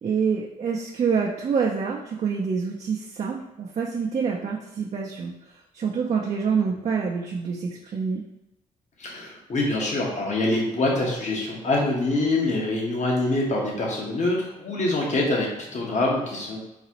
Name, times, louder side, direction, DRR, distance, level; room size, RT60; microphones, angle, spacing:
voice 1, 0.0-8.2, right 6 dB, 45° right, -2 dB, 0.5 m, -27 dB
voice 2, 9.0-16.6, left 2 dB, 50° left, -2 dB, 1.1 m, -25 dB
4.0 x 2.4 x 2.9 m, 0.96 s
supercardioid pair, 60°, 15 cm